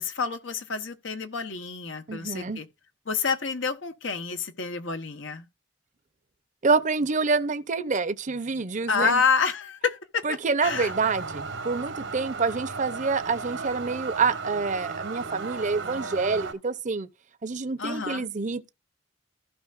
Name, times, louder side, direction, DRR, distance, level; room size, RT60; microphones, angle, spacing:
voice 1, 0.0-2.7 3.1-5.5 8.9-10.9 17.8-18.3, left 5 dB, 85° left, 1.1 m, -28 dB
voice 2, 2.1-2.6 6.6-9.2 10.2-17.1 17.4-18.7, right 4 dB, 40° right, 0.6 m, -27 dB
sound 1, 10.6-16.5, right 4 dB, 85° right, 1.4 m, -35 dB
15.0 x 5.6 x 2.5 m
head